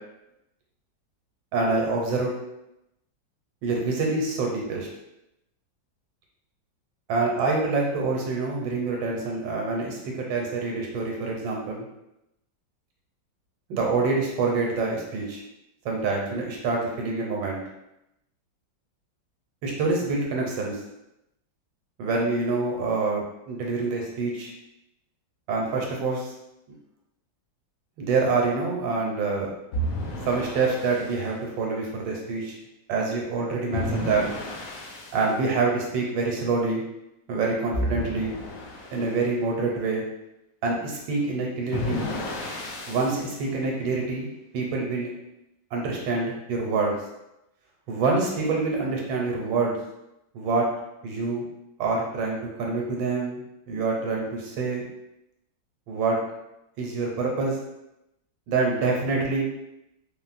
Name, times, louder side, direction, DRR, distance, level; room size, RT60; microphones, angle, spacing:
voice 1, 1.5-2.3 3.6-4.9 7.1-11.9 13.7-15.4 15.8-17.6 19.6-20.8 22.0-24.5 25.5-26.3 28.0-29.5 30.3-32.6 32.9-34.3 35.1-36.8 37.3-38.3 38.9-40.0 40.6-42.1 42.9-45.1 45.7-47.0 47.9-49.7 50.3-50.7 51.0-51.5 51.8-53.4 53.7-54.8 55.9-56.2 56.8-57.6 58.5-59.4, right 3 dB, 80° right, -1 dB, 1.4 m, -26 dB
sound 1, 29.7-31.1 33.7-35.2 37.7-39.1 41.7-43.3, equal, 75° left, 0.8 m, -32 dB
4.0 x 2.0 x 2.5 m, 0.87 s
omnidirectional pair, 2.0 m